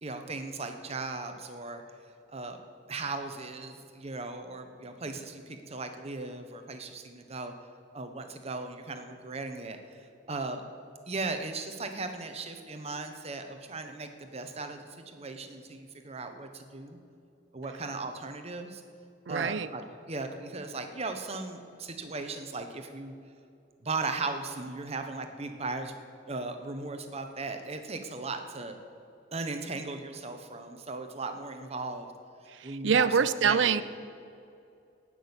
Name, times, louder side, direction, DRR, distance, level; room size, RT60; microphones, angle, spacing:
voice 1, 0.0-1.8 2.3-7.5 7.9-10.6 11.1-17.0 17.5-18.8 19.3-23.1 23.8-26.0 26.3-28.8 29.3-32.1 32.6-33.1 33.4-33.8, right 3 dB, 35° right, 6 dB, 1.1 m, -37 dB
voice 2, 19.3-19.7 32.5-33.8, right 6 dB, 70° right, 15 dB, 0.5 m, -25 dB
17.5 x 6.3 x 7.1 m, 2.5 s
head